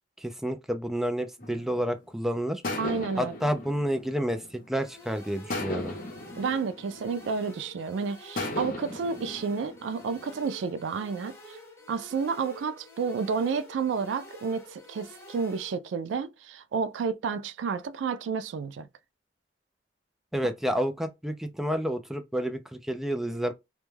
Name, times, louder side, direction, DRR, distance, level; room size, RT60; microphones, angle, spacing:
voice 1, 0.2-2.6 3.2-4.4 4.7-6.0 20.3-23.5, equal, ahead, 0.3 m, -29 dB
sound 1, 1.4-2.0 2.6-4.9 5.5-7.8 8.4-10.6, left 2 dB, 50° left, 0.6 m, -37 dB
voice 2, 2.8-3.4 6.4-11.6 11.9-18.9, right 5 dB, 90° right, 0.3 m, -31 dB
sound 2, 4.8-15.8, left 1 dB, 15° left, 0.7 m, -49 dB
2.2 x 2.2 x 3.1 m
head